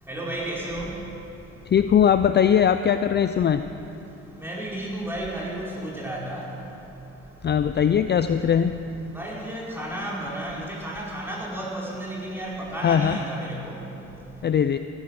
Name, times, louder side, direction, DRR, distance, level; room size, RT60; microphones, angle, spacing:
voice 1, 0.1-0.9 4.4-6.4 9.1-13.8, right 1 dB, 5° right, -5 dB, 4.4 m, -32 dB
voice 2, 1.7-3.6 7.4-8.7 12.8-13.2 14.4-14.8, left 8 dB, 35° left, 10 dB, 0.4 m, -20 dB
16.0 x 11.0 x 6.4 m, 2.9 s
cardioid pair, 90°, 30 cm